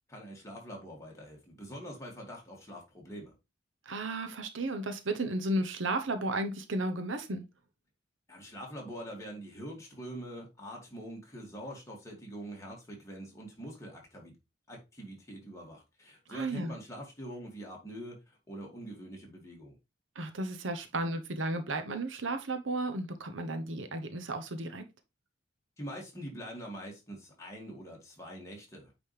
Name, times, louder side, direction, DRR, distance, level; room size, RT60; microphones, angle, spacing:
voice 1, 0.1-3.3 8.3-14.3 14.7-19.7 25.8-28.9, equal, 15° left, 2.4 m, -44 dB
voice 2, 3.9-7.5 16.3-16.8 20.1-24.9, right 2 dB, 85° right, 1.0 m, -34 dB
8.8 x 4.2 x 3.4 m
head